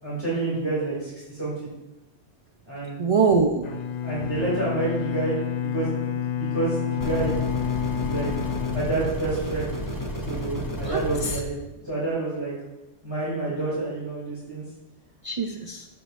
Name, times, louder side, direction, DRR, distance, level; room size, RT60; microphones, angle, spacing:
voice 1, 0.0-1.7 2.6-3.0 4.0-7.3 8.0-8.3 8.7-9.7 10.2-11.5 11.8-12.5 13.0-14.6, right 3 dB, 20° right, -10 dB, 2.5 m, -28 dB
voice 2, 3.0-3.8 10.8-11.4 15.2-15.9, right 4 dB, 55° right, 2 dB, 0.3 m, -24 dB
Bowed string instrument, 3.6-9.7, left 10 dB, 50° left, 0.5 m, -29 dB
sound 1, 7.0-11.4, equal, 20° left, 0.7 m, -32 dB
14.0 x 4.8 x 2.5 m, 1.0 s
omnidirectional pair, 1.2 m